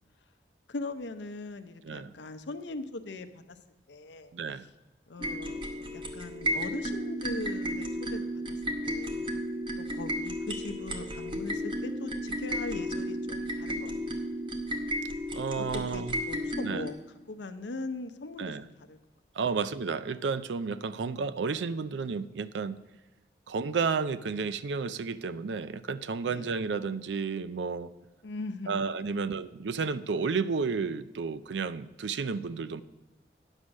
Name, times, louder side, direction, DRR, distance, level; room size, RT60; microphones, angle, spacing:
voice 1, 0.7-3.6 3.9-4.3 5.1-9.4 9.8-14.2 15.6-17.0 17.3-19.0 19.4-19.6 26.2-26.5 28.2-28.8 29.1-29.2, left 2 dB, 90° left, 10 dB, 0.7 m, -40 dB
voice 2, 4.3-4.7 15.3-16.1 16.6-16.9 18.4-18.7 19.3-22.8 23.5-27.9 28.7-32.8, right 5 dB, 90° right, 15 dB, 0.4 m, -32 dB
sound 1, 5.2-16.9, equal, 30° right, 0.9 m, -33 dB
9.8 x 6.3 x 6.2 m, 1.1 s
head